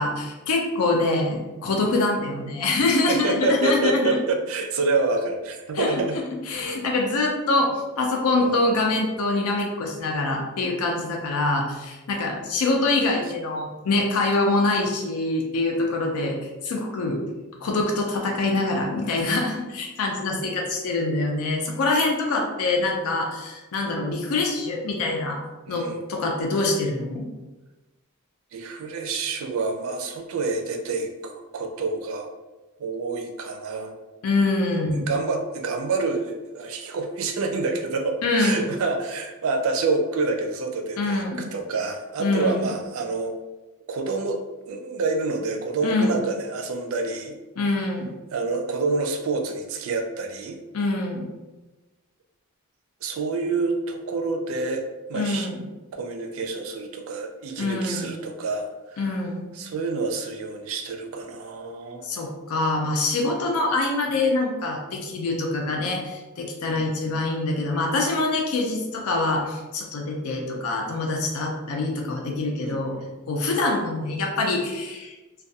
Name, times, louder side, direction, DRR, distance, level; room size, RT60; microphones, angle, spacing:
voice 1, 0.0-4.2 5.8-5.9 6.5-7.7 8.0-16.4 16.6-17.2 17.6-25.4 25.7-27.3 34.2-35.1 38.2-38.6 41.0-41.4 42.2-42.7 45.8-46.2 47.6-48.1 50.7-51.3 55.1-55.6 57.6-58.1 59.0-59.5 62.0-73.0 73.3-75.1, left 2 dB, 90° left, 0 dB, 0.4 m, -25 dB
voice 2, 3.1-6.2 8.3-9.0 15.7-15.9 25.7-26.0 28.5-32.3 32.8-34.0 34.7-41.2 41.5-43.3 43.9-47.4 48.3-50.6 53.0-54.8 55.1-55.5 55.9-59.1 59.5-62.0 66.7-67.2 72.6-73.2, right 3 dB, 70° right, 4 dB, 0.4 m, -28 dB
2.3 x 2.2 x 2.7 m, 1.1 s
head